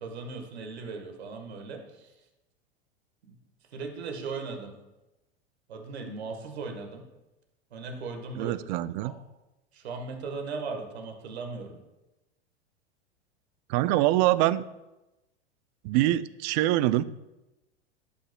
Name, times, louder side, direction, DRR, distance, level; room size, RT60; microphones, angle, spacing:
voice 1, 0.0-2.1 3.3-3.4 3.7-4.7 5.7-7.0 7.7-8.5 9.0-9.1 9.7-11.8, right 4 dB, 75° right, 4 dB, 1.4 m, -37 dB
voice 2, 8.4-9.1 13.7-14.6 15.8-17.0, right 15 dB, 45° right, 16 dB, 0.4 m, -24 dB
11.5 x 5.7 x 2.2 m, 0.99 s
hypercardioid pair, 95°, 32 cm